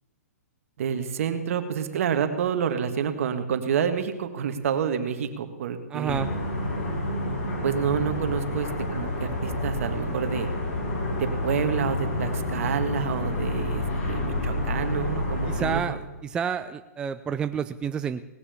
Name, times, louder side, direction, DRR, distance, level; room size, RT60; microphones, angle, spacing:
voice 1, 0.8-6.2 7.6-8.7 8.9-10.5 11.1-16.0, right 7 dB, 55° right, 9 dB, 1.6 m, -28 dB
voice 2, 5.9-6.3 15.5-16.0 16.2-18.2, right 7 dB, 10° right, 10 dB, 0.3 m, -29 dB
sound 1, 6.1-15.7, left 1 dB, 55° left, 5.2 m, -29 dB
18.5 x 6.9 x 7.0 m, 1.1 s
hypercardioid pair, 140°, 9 cm